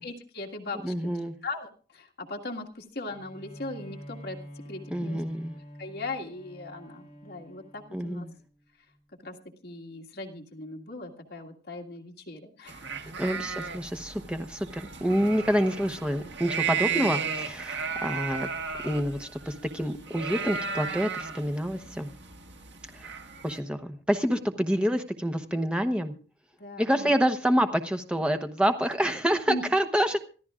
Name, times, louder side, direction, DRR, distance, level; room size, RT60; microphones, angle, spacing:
voice 1, 0.0-0.9 1.4-4.4 4.7-5.2 5.8-8.3 9.2-9.4 9.6-13.5 26.6-27.1 29.5-29.6, left 2 dB, 60° left, 0 dB, 1.9 m, -39 dB
voice 2, 0.8-1.3 4.9-5.5 7.9-8.3 13.2-18.5 18.8-22.1 22.9-23.1 23.4-26.1 26.8-30.2, equal, 5° right, 6 dB, 0.9 m, -27 dB
Bowed string instrument, 3.1-8.5, equal, 30° left, 4.3 m, -47 dB
sound 1, 12.7-23.6, right 6 dB, 80° right, 1.6 m, -35 dB
26.0 x 13.5 x 2.5 m, 0.39 s
head